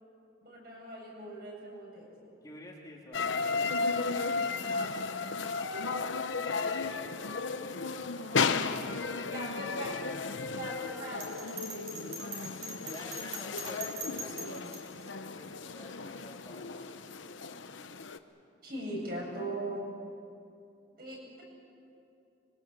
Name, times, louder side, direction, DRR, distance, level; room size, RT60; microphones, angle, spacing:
voice 1, 0.4-2.4 4.6-5.1 9.3-10.0 10.5-12.1 18.6-19.8 21.0-21.4, right 1 dB, 50° right, -3 dB, 7.9 m, -40 dB
voice 2, 2.4-3.5 5.5-10.8 12.8-17.4, left 1 dB, 20° left, -2 dB, 2.6 m, -50 dB
sound 1, 3.1-18.2, left 4 dB, 80° left, 0.9 m, -34 dB
Bell, 11.2-14.8, right 2 dB, 30° right, 3.9 m, -41 dB
25.0 x 23.0 x 7.4 m, 2.6 s
head